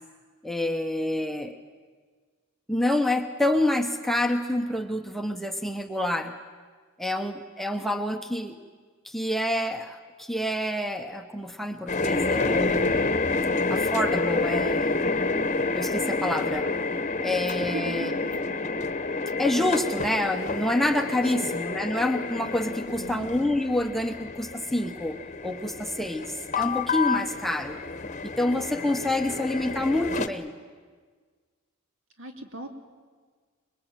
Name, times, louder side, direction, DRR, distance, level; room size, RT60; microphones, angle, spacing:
voice 1, 0.4-1.6 2.7-6.3 7.0-8.6 9.0-13.0 13.7-15.0 15.7-16.7 17.2-18.2 19.4-25.2 25.4-27.8 28.2-30.5, left 1 dB, ahead, 5 dB, 0.9 m, -27 dB
sound 1, 11.9-30.3, left 3 dB, 35° left, 1.1 m, -29 dB
voice 2, 17.7-18.5 21.3-21.5 23.0-23.3 32.2-32.7, right 2 dB, 65° right, 5 dB, 2.6 m, -38 dB
25.0 x 21.5 x 9.1 m, 1.5 s
head